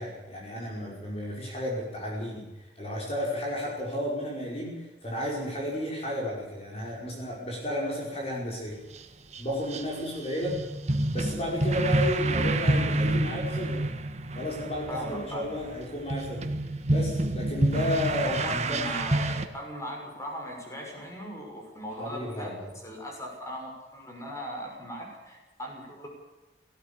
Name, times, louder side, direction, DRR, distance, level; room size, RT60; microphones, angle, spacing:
voice 1, 0.0-8.8 9.4-10.6 11.1-13.8 14.3-16.4 16.9-19.0 22.0-22.7, left 1 dB, 35° left, -3 dB, 5.4 m, -33 dB
sound 1, 8.9-9.0 9.3-9.4 9.7-19.5, right 2 dB, 40° right, 1.5 m, -28 dB
voice 2, 14.9-15.5 18.2-26.1, equal, 15° left, 0 dB, 6.3 m, -38 dB
18.5 x 17.5 x 8.6 m, 1.1 s
head